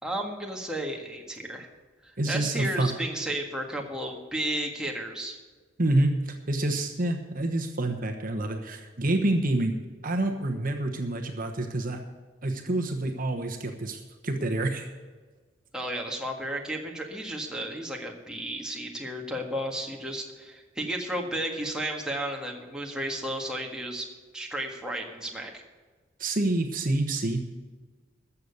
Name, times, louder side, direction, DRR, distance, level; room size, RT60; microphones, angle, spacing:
voice 1, 0.0-1.7 2.0-5.4 15.7-24.1 24.3-25.6, right 1 dB, 5° right, 0 dB, 1.7 m, -33 dB
voice 2, 2.2-2.9 5.8-9.7 10.0-12.0 12.4-14.9 26.2-27.4, right 2 dB, 45° right, 5 dB, 1.1 m, -27 dB
14.0 x 7.0 x 8.1 m, 1.4 s
head